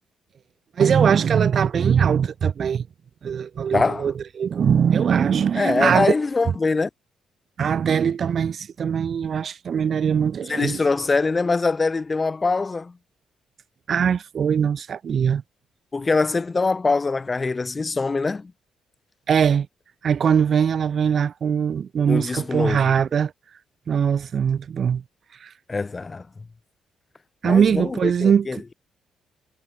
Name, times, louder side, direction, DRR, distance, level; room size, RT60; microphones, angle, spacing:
voice 1, 0.8-2.8 3.2-6.1 7.6-10.8 13.9-15.4 19.3-19.7 20.0-23.3 23.9-25.0 25.4-25.5 27.4-28.6, right 7 dB, 55° right, 2.0 m, -21 dB
voice 2, 3.7-4.1 5.5-6.9 10.5-12.9 15.9-18.5 22.1-22.9 25.7-26.2 27.4-28.7, left 3 dB, 30° left, 1.6 m, -23 dB
supercardioid pair, 70°, 0 cm